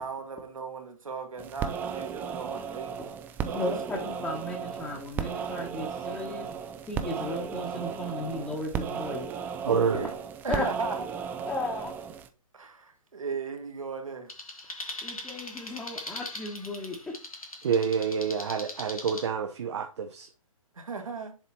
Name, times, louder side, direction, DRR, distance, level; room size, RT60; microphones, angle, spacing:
voice 1, 0.0-3.0 3.4-4.0 9.6-10.2 10.4-11.5 12.5-14.3 20.7-21.4, right 4 dB, 70° right, 1.7 m, -36 dB
sound 1, 1.4-12.3, right 7 dB, 10° right, 0.4 m, -35 dB
voice 2, 3.5-6.5 6.9-9.3 10.5-10.7 11.5-11.9 15.0-17.1, left 2 dB, 5° left, 1.1 m, -35 dB
voice 3, 9.6-10.1 17.6-20.3, right 6 dB, 50° right, 0.8 m, -28 dB
sound 2, 14.3-19.3, left 2 dB, 80° left, 2.1 m, -41 dB
7.1 x 4.1 x 4.3 m
figure-of-eight pair, 125°, 18 cm